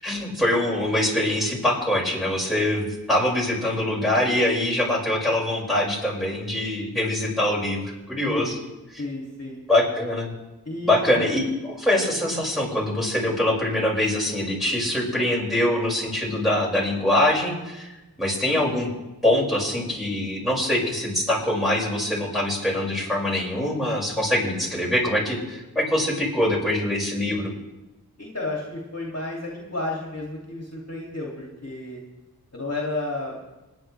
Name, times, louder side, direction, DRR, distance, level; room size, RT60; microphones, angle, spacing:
voice 1, 0.0-7.8 8.1-8.6 9.7-10.3 10.8-18.9 19.2-27.5, left 1 dB, ahead, -5 dB, 5.9 m, -24 dB
voice 2, 9.0-9.6 10.6-11.2 28.2-32.0 32.5-33.3, left 2 dB, 40° left, -3 dB, 2.7 m, -32 dB
28.5 x 9.9 x 3.4 m, 1.1 s
wide cardioid pair, 50°, 37 cm